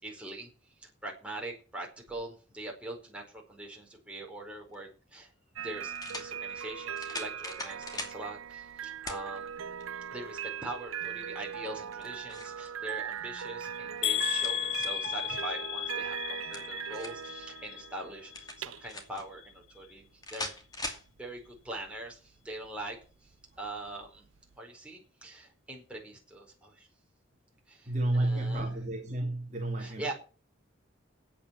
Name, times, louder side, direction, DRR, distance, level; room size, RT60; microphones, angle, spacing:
voice 1, 0.0-0.5 0.8-5.3 5.6-9.6 10.1-23.3 23.6-24.3 24.6-26.9 27.7-28.7 29.8-30.1, right 2 dB, 5° right, 4.6 m, -43 dB
sound 1, 4.7-4.8 5.9-6.3 7.0-8.2 9.1-9.2 9.8-9.9 11.8-12.6 13.9-15.1 16.3-17.3 18.3-19.2 20.2-21.1, left 2 dB, 20° left, 2.6 m, -40 dB
sound 2, 5.6-24.6, right 8 dB, 85° right, 0.6 m, -40 dB
sound 3, 14.0-18.0 18.3-18.9 19.4-19.5 19.8-19.9, left 13 dB, 70° left, 0.6 m, -34 dB
voice 2, 27.9-30.1, right 1 dB, 35° right, 1.9 m, -31 dB
8.8 x 8.7 x 8.5 m
head